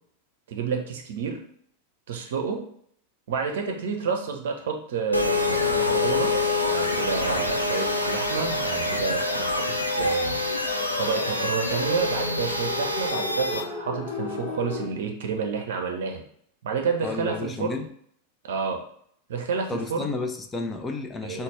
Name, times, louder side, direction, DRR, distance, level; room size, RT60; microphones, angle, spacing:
voice 1, 0.5-1.4 2.1-2.6 3.3-6.3 6.7-10.4 11.0-16.2 16.6-17.8 18.5-18.8 19.3-20.1 21.2-21.4, right 5 dB, 60° right, 3 dB, 0.6 m, -29 dB
sound 1, 5.1-13.6, left 2 dB, 85° left, 0.3 m, -27 dB
sound 2, 5.5-14.9, left 3 dB, 45° left, 0.7 m, -33 dB
voice 2, 17.0-17.9 19.7-21.4, left 3 dB, 15° left, 4 dB, 0.4 m, -31 dB
4.0 x 2.1 x 3.2 m, 0.66 s
figure-of-eight pair, 90°, 0 cm